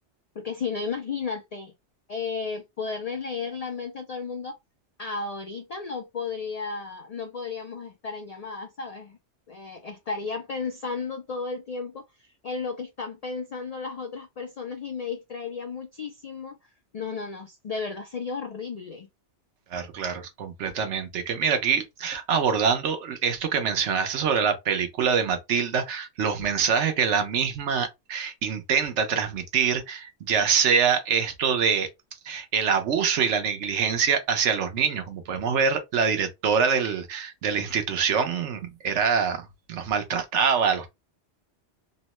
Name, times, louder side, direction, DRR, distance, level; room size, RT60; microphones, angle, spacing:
voice 1, 0.4-1.7 2.1-4.6 5.0-9.2 9.5-16.6 16.9-19.1, left 5 dB, 55° left, 0.4 m, -34 dB
voice 2, 19.7-31.9 32.3-40.9, right 6 dB, 90° right, 1.1 m, -25 dB
3.0 x 2.1 x 2.9 m
omnidirectional pair, 1.2 m